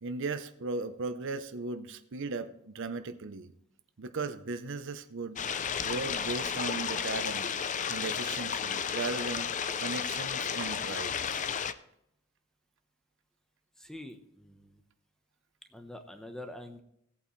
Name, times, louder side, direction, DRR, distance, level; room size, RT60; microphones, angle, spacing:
voice 1, 0.0-3.5 4.0-5.4 5.8-7.5 7.9-9.5 9.8-11.5, right 3 dB, 60° right, 10 dB, 0.7 m, -37 dB
sound 1, 5.4-11.7, left 7 dB, 35° left, 0.5 m, -33 dB
voice 2, 13.8-14.8 15.7-16.8, left 1 dB, 5° left, 7 dB, 0.9 m, -45 dB
17.0 x 8.4 x 3.2 m, 0.77 s
head